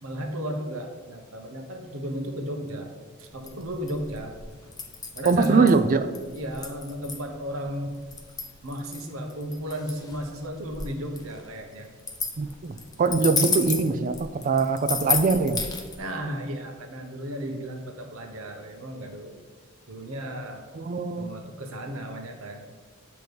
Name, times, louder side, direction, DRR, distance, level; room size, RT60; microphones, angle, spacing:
voice 1, 0.0-2.9 3.2-4.3 5.2-5.8 6.3-8.0 8.6-11.9 16.0-19.3 19.9-20.6 21.2-22.7, equal, 70° right, 4 dB, 0.9 m, -34 dB
sound 1, 3.3-16.0, left 5 dB, 20° left, 0.6 m, -32 dB
voice 2, 5.2-6.1 12.4-15.6 20.7-21.3, right 4 dB, 40° right, 10 dB, 0.4 m, -22 dB
7.8 x 3.0 x 5.1 m, 1.4 s
head